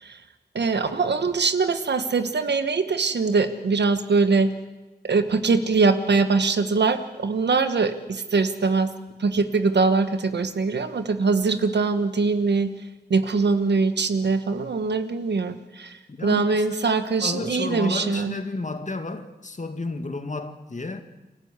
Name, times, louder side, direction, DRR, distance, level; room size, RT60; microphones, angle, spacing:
voice 1, 0.5-4.5 5.0-8.9 9.2-12.7 13.1-18.3, right 4 dB, 90° right, 1.3 m, -22 dB
voice 2, 16.1-21.0, left 2 dB, 45° left, 2.1 m, -32 dB
28.5 x 12.5 x 8.1 m
cardioid pair, 50°, 17 cm